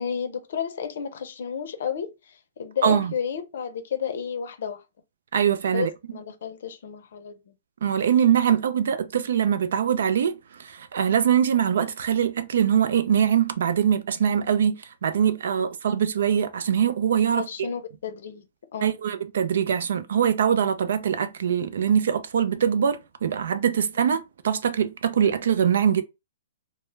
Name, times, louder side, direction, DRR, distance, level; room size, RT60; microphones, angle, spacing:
voice 1, 0.0-4.8 5.7-7.5 17.4-18.4 18.7-19.0, left 7 dB, 65° left, 0.5 m, -32 dB
voice 2, 2.8-3.1 5.3-5.9 7.8-10.3 10.6-17.5 18.8-26.0, right 8 dB, 70° right, 0.3 m, -23 dB
2.2 x 2.0 x 3.1 m
hypercardioid pair, 145°, 0 cm